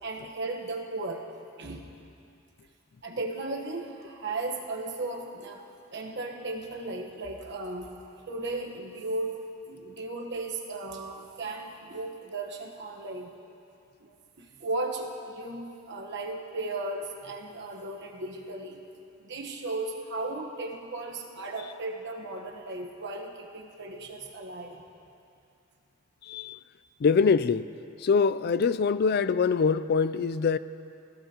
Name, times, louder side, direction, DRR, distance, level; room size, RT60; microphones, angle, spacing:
voice 1, 0.0-1.3 1.6-1.9 3.0-8.0 8.3-13.3 14.0-18.8 19.2-24.8, right 2 dB, 55° right, 1 dB, 1.2 m, -36 dB
voice 2, 26.3-26.6 27.0-27.7 28.0-30.6, left 5 dB, 50° left, 15 dB, 0.3 m, -24 dB
20.0 x 16.5 x 3.0 m, 2.6 s
head